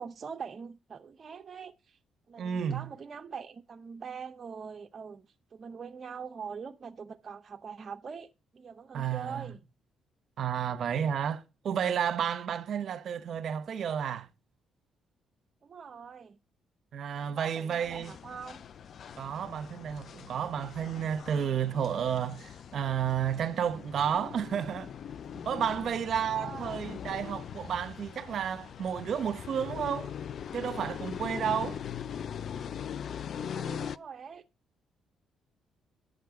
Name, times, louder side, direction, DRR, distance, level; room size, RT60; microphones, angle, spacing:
voice 1, 0.0-2.0 2.3-5.2 5.5-9.6 15.6-16.4 17.2-18.6 26.1-26.8 33.5-34.4, right 6 dB, 45° right, 0.8 m, -43 dB
voice 2, 2.4-2.9 8.9-9.5 10.4-14.3 16.9-18.1 19.2-24.9 25.4-30.1 30.5-31.8, right 8 dB, 60° right, 1.2 m, -31 dB
sound 1, 17.8-34.0, left 8 dB, 60° left, 0.5 m, -41 dB
11.0 x 6.6 x 4.8 m
cardioid pair, 90°, 0 cm